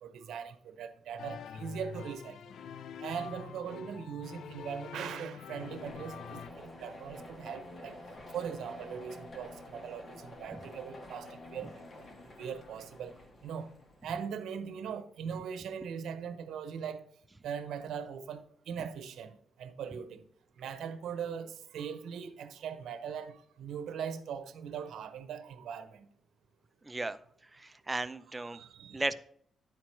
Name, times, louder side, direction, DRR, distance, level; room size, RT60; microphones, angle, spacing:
voice 1, 0.0-2.4 3.0-8.0 8.3-11.8 12.4-13.1 13.4-13.7 14.0-17.0 17.4-19.3 19.6-20.2 20.6-26.1 28.3-29.1, right 7 dB, 85° right, 0.7 m, -40 dB
sound 1, 1.2-6.5, left 7 dB, 75° left, 0.3 m, -46 dB
sound 2, 5.6-14.2, left 1 dB, 40° left, 1.5 m, -49 dB
voice 2, 26.8-27.2 27.5-28.6 28.9-29.1, right 2 dB, 15° right, 0.5 m, -35 dB
10.0 x 4.6 x 4.5 m
cardioid pair, 110°, 0 cm